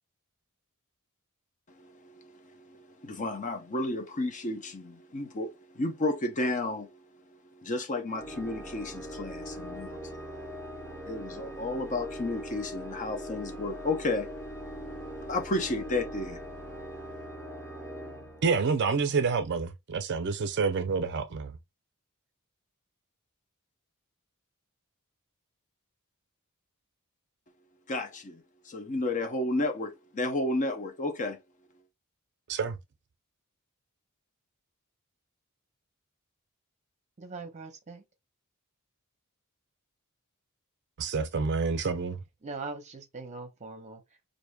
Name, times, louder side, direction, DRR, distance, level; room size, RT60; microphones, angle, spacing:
voice 1, 1.8-6.9 7.6-10.2 10.7-10.8 11.0-14.4 15.2-16.5 27.9-31.4, left 2 dB, 35° left, 0.6 m, -32 dB
Organ, 8.1-19.0, equal, 10° left, 1.3 m, -41 dB
voice 2, 18.4-21.6 32.5-32.8 41.0-42.2, right 5 dB, 50° right, 0.5 m, -28 dB
voice 3, 37.2-38.0 42.4-44.3, right 3 dB, 30° right, 0.9 m, -41 dB
4.7 x 2.6 x 2.2 m
head